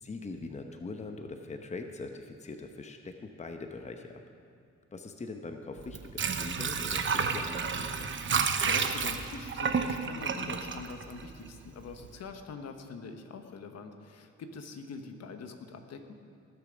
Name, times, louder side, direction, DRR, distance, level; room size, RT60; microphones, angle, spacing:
voice 1, 0.0-4.2 4.9-8.1, left 3 dB, 25° left, 5 dB, 0.9 m, -42 dB
Water / Sink (filling or washing), 5.8-11.7 12.0-12.1, right 5 dB, 40° right, 0.9 m, -31 dB
voice 2, 8.2-16.1, left 4 dB, 55° left, 6 dB, 1.1 m, -44 dB
19.5 x 6.9 x 5.2 m, 2.5 s
cardioid pair, 90°, 30 cm